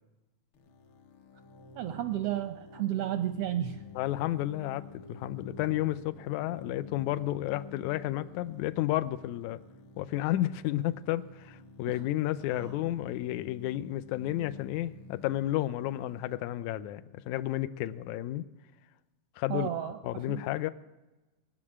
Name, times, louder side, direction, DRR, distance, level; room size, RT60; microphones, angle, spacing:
sound 1, 0.6-18.1, left 3 dB, 60° left, 1.4 m, -50 dB
voice 1, 1.8-3.8 11.9-12.0 12.5-12.7 19.5-20.0 20.3-20.4, right 12 dB, 75° right, 8 dB, 1.3 m, -32 dB
voice 2, 4.0-9.6 10.0-18.5 19.4-19.7 20.0-20.7, left 15 dB, 80° left, 14 dB, 2.0 m, -32 dB
20.0 x 7.4 x 9.8 m, 1.1 s
omnidirectional pair, 3.4 m